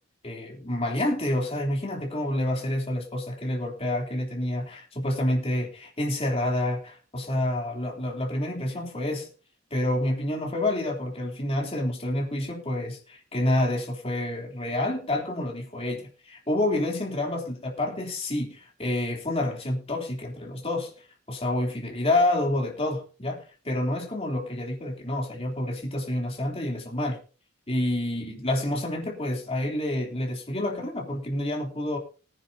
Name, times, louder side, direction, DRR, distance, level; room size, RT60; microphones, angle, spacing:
voice 1, 0.2-9.3 9.7-20.9 21.3-27.2 27.7-32.0, left 1 dB, 30° left, 0 dB, 3.3 m, -28 dB
19.5 x 9.8 x 2.8 m, 0.35 s
head